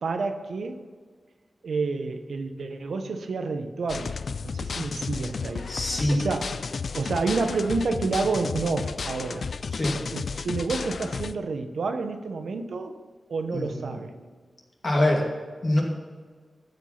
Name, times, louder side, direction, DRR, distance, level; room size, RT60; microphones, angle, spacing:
voice 1, 0.0-0.8 1.6-4.1 4.4-5.7 6.1-6.6 6.9-9.4 10.1-12.9 13.3-14.1, right 4 dB, 85° right, 7 dB, 0.8 m, -29 dB
sound 1, 3.9-11.4, left 5 dB, 65° left, 0.4 m, -33 dB
voice 2, 5.7-6.2 9.7-10.0 13.5-13.9 14.8-15.3 15.6-15.8, left 1 dB, 45° left, -2 dB, 2.5 m, -24 dB
14.0 x 5.3 x 5.7 m, 1.5 s
wide cardioid pair, 115°, 0 cm